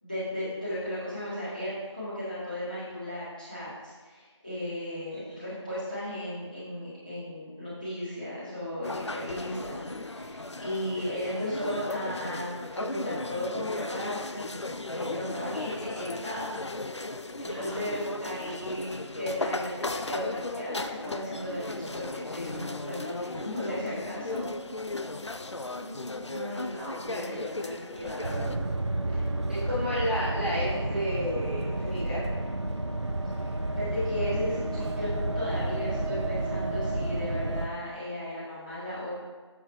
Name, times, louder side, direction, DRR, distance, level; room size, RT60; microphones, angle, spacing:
voice 1, 0.0-16.6 17.2-24.4 29.1-29.3 33.4-39.1, left 1 dB, 15° left, -15 dB, 1.8 m, -35 dB
sound 1, 8.8-28.6, left 2 dB, 70° left, 0.5 m, -36 dB
voice 2, 17.5-17.8 25.5-28.5 29.1-29.2 29.5-32.2, equal, 20° right, -11 dB, 2.0 m, -34 dB
sound 2, 28.2-37.7, right 2 dB, 70° right, 0.7 m, -31 dB
7.1 x 6.5 x 3.1 m, 1.4 s
figure-of-eight pair, 180°, 15 cm